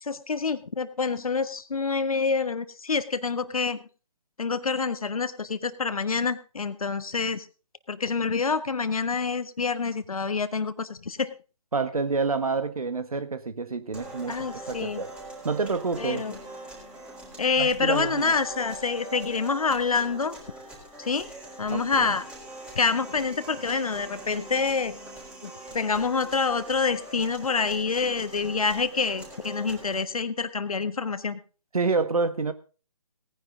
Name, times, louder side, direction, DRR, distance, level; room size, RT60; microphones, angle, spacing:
voice 1, 0.0-3.8 4.4-7.5 7.9-11.3 14.3-15.0 16.0-16.3 17.4-20.4 21.0-21.3 21.6-22.2 22.7-25.0 25.4-31.4, left 4 dB, 70° left, 1.4 m, -27 dB
voice 2, 11.7-14.4 14.7-15.1 15.4-16.2 17.6-18.3 21.7-22.1 31.7-32.5, right 4 dB, 75° right, 1.6 m, -28 dB
sound 1, 13.9-29.9, right 2 dB, 5° right, 3.9 m, -43 dB
18.0 x 10.0 x 3.8 m
figure-of-eight pair, 150°, 19 cm